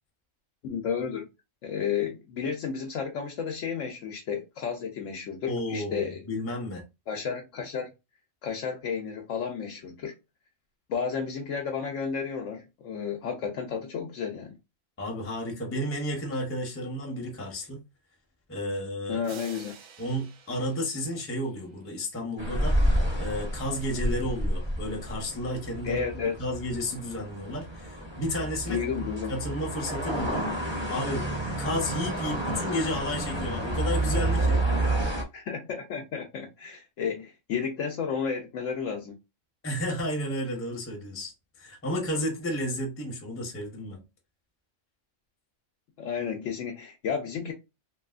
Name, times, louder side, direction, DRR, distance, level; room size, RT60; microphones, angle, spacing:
voice 1, 0.6-1.3 1.6-6.2 7.1-7.9 8.4-10.1 10.9-14.5 19.1-19.7 25.8-26.3 28.7-29.3 35.3-39.1 46.0-47.5, left 6 dB, 70° left, 0.9 m, -32 dB
voice 2, 5.5-6.8 15.0-17.8 18.5-19.2 20.0-22.8 23.2-26.0 26.4-31.3 31.6-34.6 39.6-41.3 41.6-44.0, equal, 15° left, 0.6 m, -32 dB
sound 1, 19.2-21.9, right 5 dB, 80° right, 1.1 m, -49 dB
sound 2, 22.4-35.2, right 1 dB, 25° right, 0.8 m, -29 dB
3.0 x 2.6 x 2.4 m
omnidirectional pair, 1.4 m